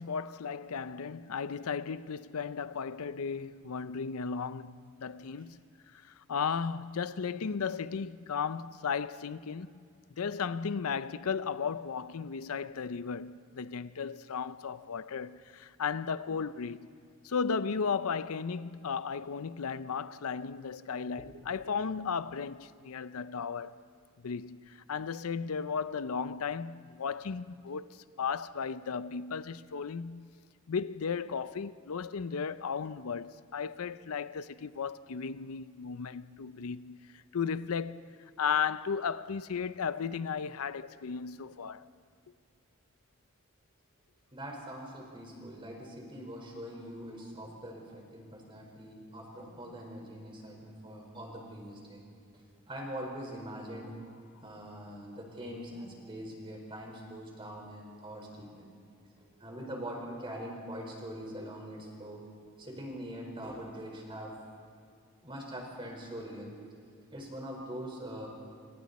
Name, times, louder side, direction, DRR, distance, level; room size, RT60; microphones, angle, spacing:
voice 1, 0.0-5.6 5.9-9.7 10.2-16.9 17.2-23.7 24.2-30.3 30.7-41.9, left 6 dB, 80° left, 0.5 m, -35 dB
voice 2, 44.3-52.0 52.3-53.9 54.4-58.7 59.2-62.2 62.6-64.4 65.2-66.6 67.1-68.3, equal, 25° right, 4.6 m, -43 dB
29.0 x 28.0 x 4.2 m
head